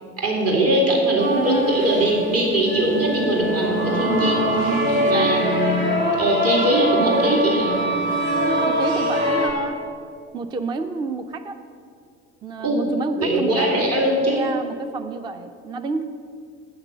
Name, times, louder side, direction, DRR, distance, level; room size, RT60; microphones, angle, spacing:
voice 1, 0.2-4.8 5.1-5.9 6.1-7.8 12.6-12.9 13.2-14.4, right 1 dB, 35° right, -1 dB, 2.3 m, -21 dB
voice 2, 1.1-1.8 4.6-5.4 7.8-8.2 8.6-9.8 10.3-11.6 12.4-13.8 14.3-16.0, right 4 dB, 10° right, 9 dB, 0.3 m, -29 dB
sound 1, 1.2-9.5, right 1 dB, 75° right, 2.2 m, -23 dB
8.5 x 5.9 x 7.8 m, 2.3 s
figure-of-eight pair, 65°, 40 cm